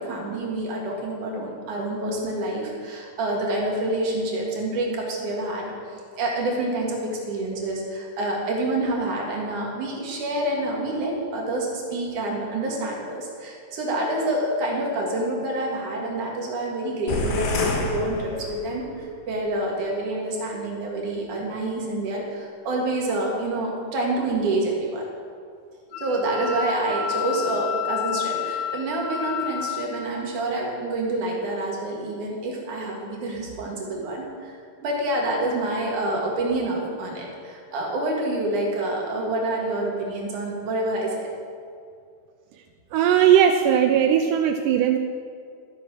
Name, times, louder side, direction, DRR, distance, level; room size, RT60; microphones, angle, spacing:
voice 1, 0.0-5.7 6.2-25.0 25.9-34.5 34.8-41.3, right 1 dB, 60° right, -1 dB, 3.2 m, -27 dB
sound 1, 17.1-18.9, left 2 dB, 75° left, 3.0 m, -28 dB
Wind instrument woodwind instrument, 25.9-29.9, left 7 dB, 90° left, 3.2 m, -30 dB
voice 2, 42.9-45.0, right 9 dB, 85° right, 6 dB, 1.8 m, -18 dB
13.5 x 7.6 x 6.1 m, 2.3 s
omnidirectional pair, 4.2 m